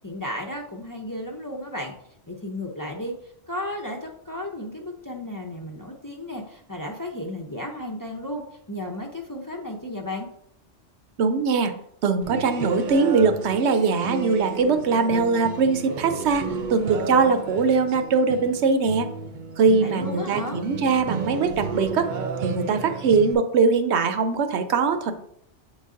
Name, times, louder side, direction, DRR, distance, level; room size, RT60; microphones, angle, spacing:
voice 1, 0.0-1.9 2.3-3.1 3.5-10.3 19.8-20.6, left 1 dB, 20° left, 0 dB, 0.6 m, -34 dB
voice 2, 11.2-11.7 12.0-19.1 19.6-22.1 22.4-25.1, right 4 dB, 75° right, 9 dB, 0.9 m, -21 dB
sound 1, 12.2-23.3, right 5 dB, 55° right, 0.6 m, -33 dB
7.8 x 4.0 x 3.7 m, 0.71 s
omnidirectional pair, 1.2 m